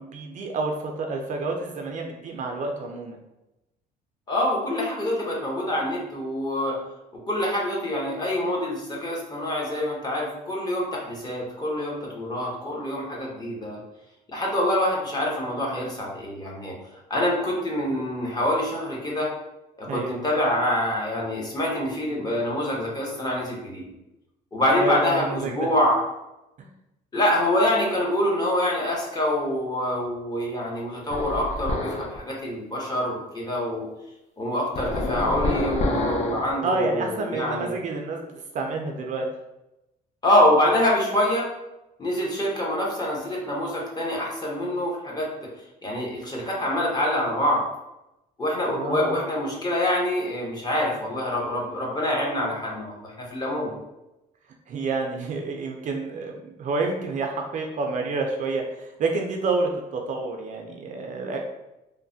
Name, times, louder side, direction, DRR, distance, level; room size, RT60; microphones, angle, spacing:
voice 1, 0.0-3.2 19.9-20.2 24.8-25.7 36.6-39.3 48.7-49.2 54.7-61.4, right 3 dB, 50° right, 2 dB, 0.4 m, -29 dB
voice 2, 4.3-6.8 7.3-13.8 14.3-16.7 17.1-19.3 19.8-23.9 24.5-26.0 27.1-33.9 34.4-37.7 40.2-41.5 42.0-45.3 45.8-47.6 48.4-53.8, left 1 dB, 25° left, -3 dB, 0.8 m, -25 dB
sound 1, 31.1-32.2 34.8-36.5, left 2 dB, 40° left, 0.4 m, -27 dB
3.0 x 2.1 x 2.6 m, 0.94 s
cardioid pair, 110°, 17 cm